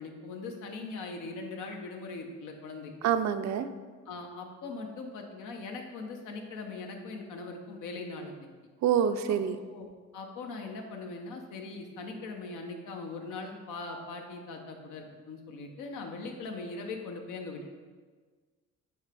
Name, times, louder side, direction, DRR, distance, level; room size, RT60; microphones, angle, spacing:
voice 1, 0.0-2.9 4.1-8.5 9.7-9.9 10.1-17.7, left 3 dB, 90° left, 3 dB, 0.9 m, -40 dB
voice 2, 3.0-3.7 8.8-9.6, right 8 dB, 65° right, 10 dB, 0.5 m, -26 dB
8.8 x 3.3 x 3.4 m, 1.5 s
cardioid pair, 90°, 30 cm